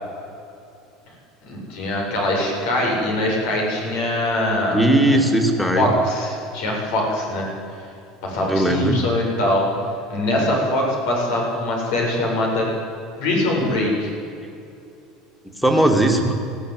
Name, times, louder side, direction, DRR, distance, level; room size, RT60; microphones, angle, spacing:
voice 1, 1.4-4.8 5.1-5.2 5.7-7.5 8.2-9.6 10.1-12.7 13.2-14.1, left 1 dB, 70° left, -1 dB, 7.8 m, -22 dB
voice 2, 4.7-5.9 8.4-9.0 15.6-16.4, right 1 dB, ahead, 4 dB, 2.6 m, -18 dB
20.5 x 16.0 x 9.6 m, 2.7 s
cardioid pair, 150°, 0 cm